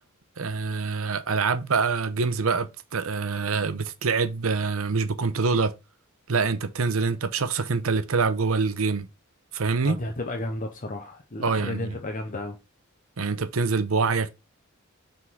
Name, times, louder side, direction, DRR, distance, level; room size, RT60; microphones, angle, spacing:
voice 1, 0.4-5.7 6.3-9.1 9.5-10.0 11.4-11.9 13.2-14.3, right 4 dB, 85° right, 0.8 m, -25 dB
voice 2, 9.8-12.6, left 1 dB, 40° left, 0.8 m, -33 dB
6.1 x 3.8 x 4.6 m
head